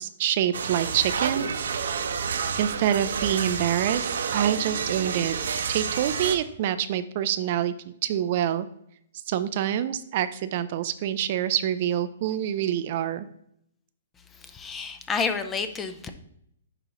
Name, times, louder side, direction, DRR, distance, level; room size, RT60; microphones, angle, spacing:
voice 1, 0.0-2.2 2.6-5.4 5.7-8.7 9.3-13.3, right 10 dB, 45° right, 12 dB, 0.4 m, -26 dB
sound 1, 0.5-6.4, right 6 dB, 75° right, 0.7 m, -29 dB
voice 2, 14.3-16.1, left 5 dB, 15° left, 9 dB, 0.5 m, -30 dB
10.0 x 3.9 x 3.0 m, 0.72 s
hypercardioid pair, 155°, 0 cm